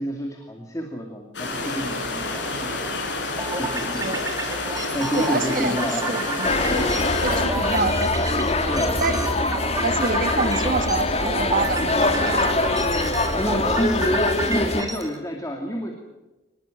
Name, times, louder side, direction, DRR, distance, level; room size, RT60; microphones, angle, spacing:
voice 1, 0.0-3.1 3.5-4.3 4.9-6.8 8.6-9.2 13.3-15.9, equal, 15° left, 2 dB, 2.4 m, -29 dB
sound 1, 1.3-7.5, left 2 dB, 65° left, 5.6 m, -29 dB
sound 2, 3.4-15.2, right 3 dB, 20° right, 2.5 m, -32 dB
voice 2, 4.0-4.3 5.1-6.5 6.8-8.1 9.0-9.2 9.8-12.6, right 3 dB, 45° right, 9 dB, 1.4 m, -27 dB
sound 3, 6.4-14.8, left 2 dB, 35° left, 2.5 m, -23 dB
24.5 x 20.0 x 9.1 m, 1.1 s
head